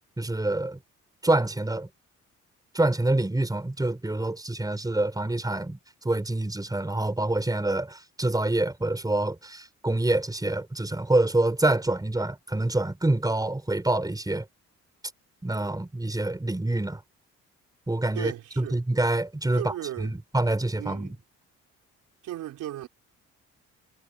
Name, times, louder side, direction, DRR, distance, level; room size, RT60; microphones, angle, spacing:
voice 1, 0.2-0.8 1.2-1.9 2.7-5.8 6.0-14.5 15.4-17.0 17.9-21.2, right 2 dB, 10° right, 5.2 m, -26 dB
voice 2, 18.1-18.8 19.5-20.1 20.8-21.1 22.2-22.9, right 13 dB, 85° right, 3.8 m, -35 dB
cardioid pair, 90°, 30 cm